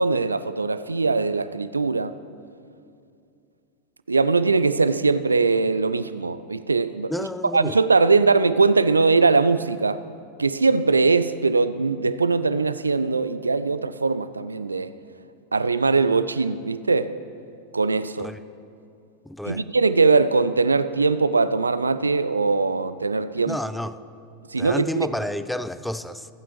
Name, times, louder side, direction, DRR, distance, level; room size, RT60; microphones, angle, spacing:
voice 1, 0.0-2.2 4.1-7.3 7.5-10.0 10.4-14.9 15.5-17.1 17.7-18.3 19.4-23.6 24.5-25.1, right 4 dB, 80° right, 14 dB, 0.4 m, -21 dB
voice 2, 7.1-7.8 18.2-18.4 19.3-19.6 23.5-24.0 24.6-26.3, left 1 dB, ahead, 12 dB, 0.4 m, -30 dB
24.0 x 9.1 x 3.1 m, 2.5 s
figure-of-eight pair, 90°, 0 cm